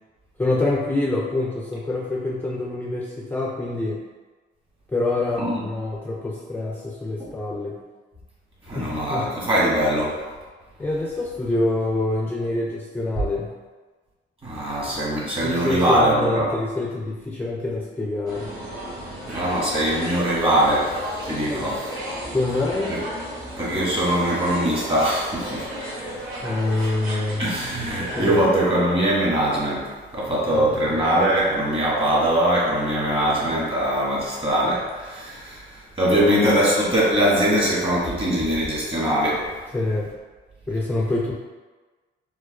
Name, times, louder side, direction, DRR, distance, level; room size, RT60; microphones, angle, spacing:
voice 1, 0.4-4.0 4.9-7.8 8.7-9.3 10.8-13.5 15.4-18.5 21.5-21.7 22.3-23.0 26.4-27.5 28.1-28.4 30.5-30.8 39.7-40.1 40.7-41.3, left 2 dB, 10° left, -4 dB, 0.4 m, -26 dB
voice 2, 8.7-10.2 14.4-16.5 19.3-20.9 21.2-21.8 22.9-23.0 23.6-25.7 27.4-39.5, right 1 dB, 25° right, -6 dB, 1.3 m, -22 dB
sound 1, 18.3-28.4, equal, 45° right, 1.4 m, -34 dB
4.5 x 2.1 x 2.3 m, 1.3 s
cardioid pair, 90°, 20 cm